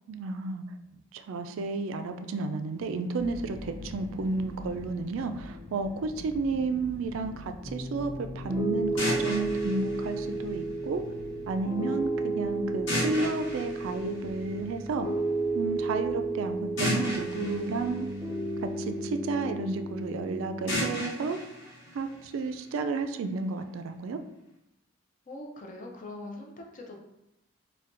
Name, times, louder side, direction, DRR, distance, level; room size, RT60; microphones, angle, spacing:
voice 1, 0.1-0.6 1.1-11.0 11.5-15.1 15.5-18.1 18.8-21.4 21.9-24.2, right 3 dB, 80° right, 8 dB, 0.3 m, -32 dB
sound 1, 3.2-19.1, left 1 dB, 15° left, 1.0 m, -47 dB
Piano, 7.7-20.7, right 2 dB, 15° right, 0.7 m, -33 dB
sound 2, 9.0-11.0 12.9-14.8 16.8-19.0 20.7-22.7, left 1 dB, 65° left, 1.2 m, -35 dB
voice 2, 25.3-27.0, left 2 dB, 40° left, 1 dB, 0.5 m, -42 dB
4.1 x 2.2 x 2.5 m, 0.86 s
head